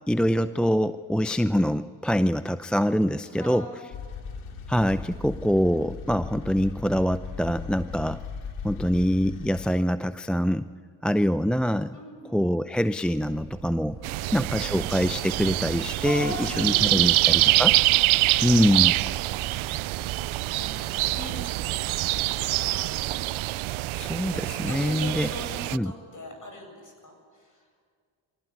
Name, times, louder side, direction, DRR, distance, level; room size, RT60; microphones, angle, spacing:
voice 1, 0.1-3.7 4.7-8.2 8.6-10.7 11.0-11.9 12.3-14.0 14.3-17.8 18.4-19.0 23.9-25.3 25.7-25.9, equal, ahead, 13 dB, 0.6 m, -24 dB
voice 2, 3.3-3.9 11.9-12.4 14.0-14.8 16.0-17.5 18.1-20.0 20.5-22.9 24.3-27.6, left 1 dB, 40° left, 3 dB, 8.0 m, -41 dB
sound 1, 3.9-9.7, left 5 dB, 90° left, 2.5 m, -38 dB
Purr, 13.2-24.3, right 6 dB, 50° right, 1.7 m, -43 dB
sound 2, 14.0-25.8, right 19 dB, 75° right, 0.5 m, -25 dB
23.5 x 16.5 x 9.8 m, 2.1 s
supercardioid pair, 55°, 49 cm